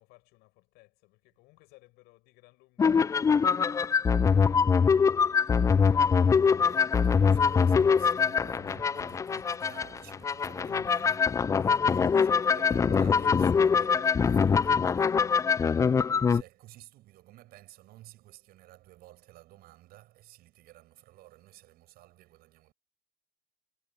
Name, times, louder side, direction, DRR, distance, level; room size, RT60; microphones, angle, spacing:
voice 1, 0.0-4.3, left 24 dB, 70° left, 7.5 m, -61 dB
sound 1, 2.8-16.4, left 6 dB, 20° left, 0.3 m, -24 dB
voice 2, 5.6-5.9 6.4-22.7, right 16 dB, 60° right, 6.9 m, -53 dB
hypercardioid pair, 75°, 18 cm